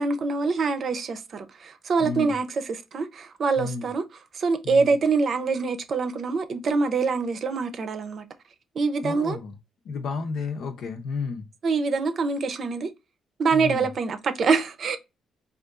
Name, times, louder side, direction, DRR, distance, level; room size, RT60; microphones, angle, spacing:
voice 1, 0.0-4.0 4.3-8.3 8.7-9.4 11.6-12.9 13.4-15.0, right 4 dB, 55° right, 0.6 m, -25 dB
voice 2, 2.0-2.4 3.6-3.9 4.6-4.9 9.0-9.5 9.8-11.5 13.5-13.9, left 4 dB, 70° left, 0.8 m, -32 dB
3.6 x 2.5 x 2.4 m
cardioid pair, 90°, 0 cm